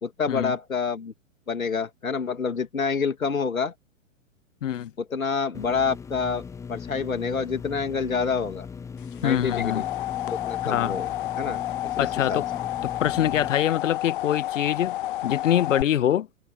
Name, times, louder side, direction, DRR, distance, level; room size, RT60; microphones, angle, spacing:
voice 1, 0.0-1.1 1.5-3.7 5.0-6.4 6.7-8.7 9.2-9.8 10.3-11.1 11.4-12.4, left 5 dB, 80° left, 2.6 m, -28 dB
sound 1, 5.5-13.5, left 6 dB, 5° left, 0.7 m, -39 dB
sound 2, 9.1-15.8, left 15 dB, 40° left, 0.5 m, -30 dB
voice 2, 9.2-9.8 10.6-11.0 12.0-12.4 12.8-15.0 15.2-16.3, left 11 dB, 65° left, 1.0 m, -24 dB
figure-of-eight pair, 115°, 41 cm